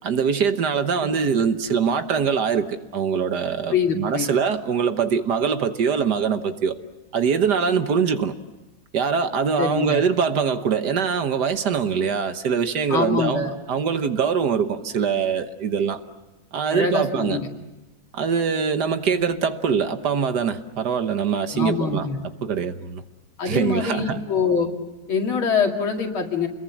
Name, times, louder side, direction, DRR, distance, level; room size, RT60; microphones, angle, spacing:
voice 1, 0.0-6.8 7.1-8.4 8.9-13.4 13.7-16.0 16.5-17.4 18.1-22.1 22.4-23.0 23.5-24.2, right 6 dB, 60° right, 1.6 m, -23 dB
voice 2, 3.7-4.3 9.6-10.0 12.9-13.5 16.7-17.5 19.1-19.2 21.5-22.2 23.4-24.7 25.1-26.5, left 5 dB, 90° left, 3.3 m, -24 dB
29.5 x 22.0 x 7.3 m
omnidirectional pair, 2.2 m